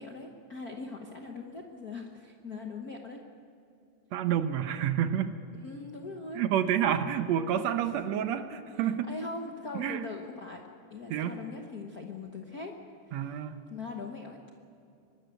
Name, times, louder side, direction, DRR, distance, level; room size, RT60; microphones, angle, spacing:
voice 1, 0.0-3.2 5.5-6.4 9.1-10.6 10.9-12.7 13.1-13.4 13.7-14.4, left 3 dB, 55° left, 2 dB, 1.0 m, -41 dB
voice 2, 4.1-5.3 6.4-9.1 9.8-10.1 11.1-11.4 13.1-13.6, right 9 dB, 70° right, 9 dB, 1.9 m, -29 dB
23.5 x 13.0 x 9.2 m, 2.7 s
omnidirectional pair, 3.4 m